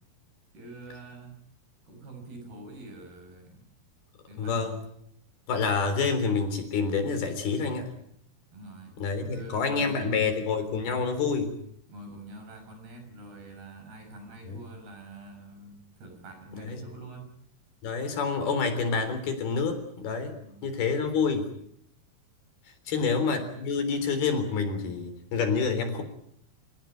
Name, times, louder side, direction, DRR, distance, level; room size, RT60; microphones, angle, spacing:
voice 1, 0.5-1.4 1.9-3.7 4.3-4.7 8.5-10.3 11.9-17.3 20.4-20.8 22.9-23.1, right 2 dB, 85° right, 5 dB, 8.3 m, -46 dB
voice 2, 4.4-4.8 5.5-7.9 9.0-11.5 14.5-14.6 16.5-16.8 17.8-20.3 20.6-21.5 22.9-26.0, left 5 dB, 80° left, 8 dB, 5.6 m, -28 dB
29.0 x 17.0 x 9.2 m, 0.74 s
omnidirectional pair, 4.4 m